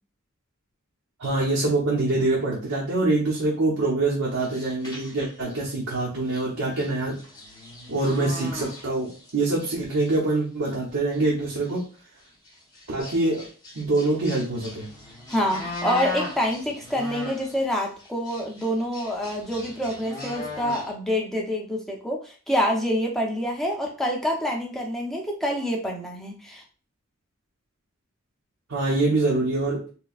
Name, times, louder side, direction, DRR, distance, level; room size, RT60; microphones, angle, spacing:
voice 1, 1.2-7.2 7.9-11.9 12.9-13.5 13.7-14.9 28.7-29.9, right 2 dB, 75° right, -5 dB, 0.9 m, -25 dB
sound 1, 4.4-5.7 6.3-6.4 6.8-9.3 9.6-10.1 10.7-10.8 11.1-11.2 11.6-11.8 12.5-17.6 18.0-20.9, left 1 dB, 20° left, 1.2 m, -38 dB
voice 2, 15.3-26.6, equal, ahead, -1 dB, 0.8 m, -27 dB
4.5 x 2.2 x 2.4 m, 0.36 s
head